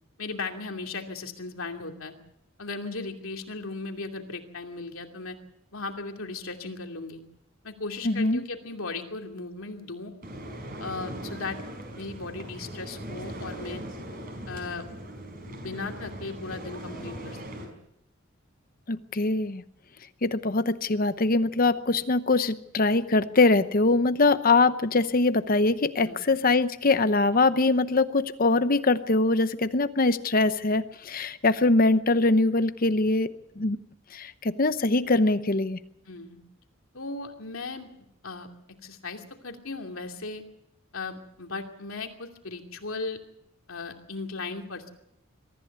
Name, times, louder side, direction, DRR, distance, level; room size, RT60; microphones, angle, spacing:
voice 1, 0.2-2.1 2.6-5.4 5.7-7.2 7.6-10.1 10.8-11.6 12.0-13.8 14.5-14.9 15.5-17.7 26.0-26.2 36.1-36.4 36.9-37.9 38.2-38.5 38.8-40.4 40.9-43.2 43.7-44.9, left 3 dB, 80° left, 4 dB, 2.7 m, -37 dB
voice 2, 8.0-8.4 18.9-19.6 20.2-33.3 33.6-33.8 34.1-35.8, left 3 dB, 45° left, 12 dB, 0.8 m, -23 dB
sound 1, 10.2-17.7, right 1 dB, 45° right, 4.9 m, -39 dB
23.5 x 14.5 x 8.1 m, 0.80 s
head